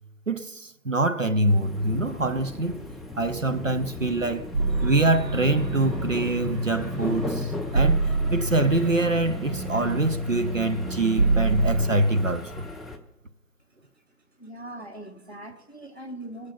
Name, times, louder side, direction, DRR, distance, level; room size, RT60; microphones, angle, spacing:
voice 1, 0.3-2.8 3.2-4.5 4.8-12.7, right 2 dB, 55° right, 0.5 m, -25 dB
sound 1, 1.5-13.0, left 2 dB, ahead, 0.5 m, -38 dB
sound 2, 4.5-11.9, right 2 dB, 80° right, 1.9 m, -27 dB
voice 2, 14.4-16.5, right 1 dB, 40° left, 0.6 m, -40 dB
15.5 x 6.5 x 6.9 m
figure-of-eight pair, 175°, 49 cm